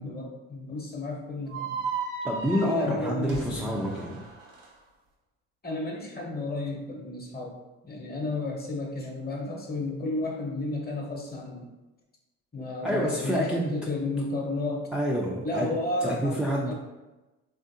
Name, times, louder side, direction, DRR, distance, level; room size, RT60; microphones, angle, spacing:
voice 1, 0.0-1.8 2.6-3.7 5.6-7.5 7.8-11.7 12.5-14.9 15.4-16.7, left 2 dB, 30° left, -1 dB, 0.9 m, -32 dB
sound 1, 1.5-4.7, right 4 dB, 90° right, 0.6 m, -35 dB
voice 2, 2.2-4.2 12.8-13.7 14.9-15.7 16.0-16.7, equal, 5° right, -3 dB, 0.3 m, -28 dB
3.3 x 2.5 x 2.6 m, 1.1 s
supercardioid pair, 70°, 34 cm